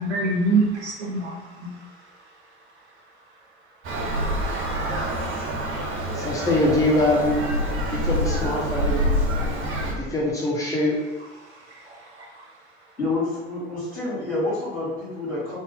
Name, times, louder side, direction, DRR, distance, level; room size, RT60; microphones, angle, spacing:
voice 1, 0.0-3.5 11.4-13.0, right 3 dB, 80° right, -3 dB, 0.6 m, -29 dB
Traffic noise roadway noise, 3.8-9.9, equal, 40° right, 1.0 m, -26 dB
voice 2, 6.1-7.5 7.9-9.1 9.8-11.0, left 1 dB, 10° left, -5 dB, 0.9 m, -23 dB
voice 3, 13.0-15.6, left 2 dB, 85° left, -13 dB, 1.5 m, -28 dB
2.7 x 2.3 x 3.4 m, 1.1 s
figure-of-eight pair, 60°, 33 cm